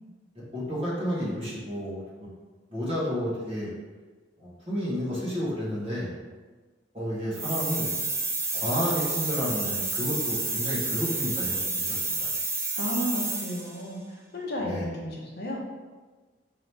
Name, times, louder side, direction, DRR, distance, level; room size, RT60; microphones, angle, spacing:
voice 1, 0.5-2.3 2.7-3.7 4.4-6.1 6.9-7.9 8.5-12.3 14.6-14.8, equal, 35° right, -8 dB, 1.4 m, -31 dB
sound 1, 7.3-13.8, right 3 dB, 15° right, 0.5 m, -30 dB
voice 2, 12.8-15.6, equal, 60° left, -2 dB, 0.7 m, -33 dB
3.9 x 3.0 x 3.3 m, 1.3 s
head